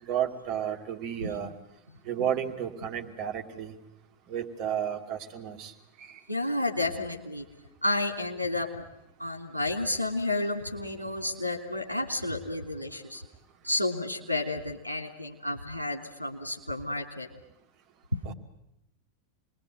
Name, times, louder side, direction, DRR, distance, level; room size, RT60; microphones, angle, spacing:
voice 1, 0.0-1.5 2.1-3.7 4.3-5.7 6.0-6.2 18.3-18.4, right 9 dB, 40° right, 3 dB, 2.6 m, -32 dB
voice 2, 6.3-7.4 7.8-8.8 9.2-13.2 13.6-17.3 18.1-18.2, left 2 dB, 85° left, 8 dB, 3.0 m, -31 dB
27.5 x 21.0 x 9.2 m, 0.83 s
figure-of-eight pair, 90°, 0 cm